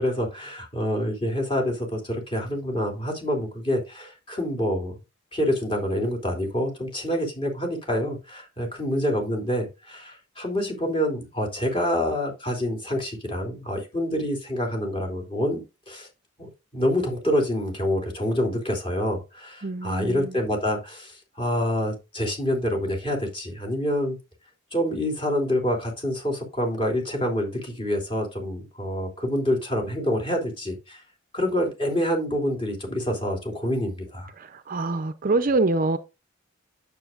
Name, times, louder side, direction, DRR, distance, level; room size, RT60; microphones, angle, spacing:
voice 1, 0.0-4.9 5.3-16.1 16.4-24.2 24.7-31.0 31.3-34.3, equal, 25° left, 3.0 m, -27 dB
voice 2, 19.6-20.3 34.7-36.0, right 2 dB, 40° right, 0.6 m, -24 dB
9.1 x 7.2 x 2.5 m
head